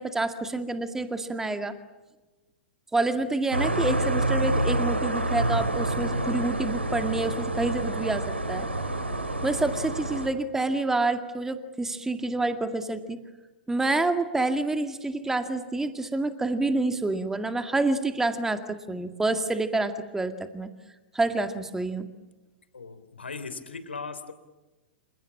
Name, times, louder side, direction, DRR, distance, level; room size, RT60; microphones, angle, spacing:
voice 1, 0.0-1.7 2.9-8.7 9.4-13.2 13.7-20.7 21.1-22.1, right 2 dB, 5° right, 8 dB, 2.1 m, -28 dB
sound 1, 3.5-10.3, right 1 dB, 85° right, 3.3 m, -28 dB
voice 2, 22.7-24.3, left 4 dB, 75° left, 11 dB, 3.2 m, -38 dB
29.0 x 27.0 x 7.4 m, 1.1 s
figure-of-eight pair, 105°, 6 cm